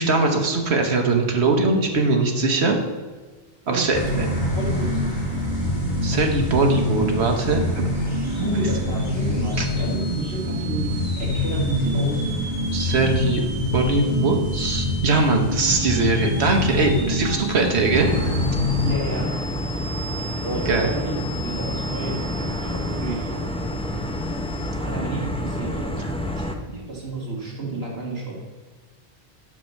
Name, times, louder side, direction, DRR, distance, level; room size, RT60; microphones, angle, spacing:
voice 1, 0.0-2.8 3.7-4.3 6.0-7.9 9.6-9.7 10.1-10.2 12.7-13.4 13.7-18.3 20.7-20.9, right 3 dB, 90° right, 3 dB, 1.5 m, -21 dB
voice 2, 3.6-4.1 4.5-4.9 8.4-10.9 11.2-12.5 18.8-19.3 20.4-21.1 21.4-23.3 24.8-25.9 26.3-28.4, right 2 dB, 70° right, -4 dB, 2.6 m, -31 dB
sound 1, 3.9-18.9, left 1 dB, 45° left, 2.3 m, -25 dB
sound 2, 7.9-24.7, right 1 dB, 15° right, 1.6 m, -39 dB
sound 3, 17.9-26.6, left 1 dB, 5° left, 0.5 m, -28 dB
7.7 x 6.0 x 6.4 m, 1.4 s
omnidirectional pair, 1.1 m